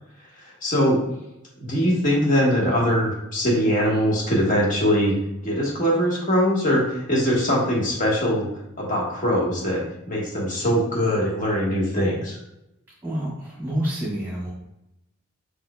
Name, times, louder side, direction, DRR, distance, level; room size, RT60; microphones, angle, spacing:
voice 1, 0.6-1.0 1.6-5.2 5.4-8.5 8.8-12.4, equal, 45° left, -3 dB, 1.4 m, -22 dB
voice 2, 13.0-14.5, equal, 10° right, -6 dB, 1.7 m, -28 dB
5.0 x 4.3 x 2.3 m, 0.85 s
head